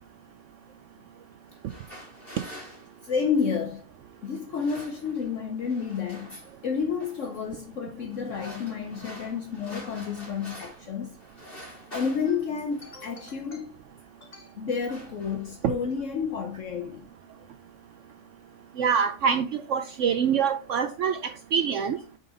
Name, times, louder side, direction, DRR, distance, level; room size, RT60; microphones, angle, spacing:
sound 1, 1.5-3.7 4.4-5.4 5.6-6.6 7.0-7.4 8.1-10.9 11.2-13.3 14.1-14.3 14.6-15.7, equal, 35° left, 3.2 m, -46 dB
voice 1, 3.0-3.8 4.2-6.4 6.6-11.2 11.9-13.8 14.2-17.1, left 6 dB, 60° left, 1.1 m, -30 dB
voice 2, 18.8-22.0, right 7 dB, 65° right, 0.8 m, -25 dB
5.7 x 5.2 x 3.8 m
omnidirectional pair, 1.6 m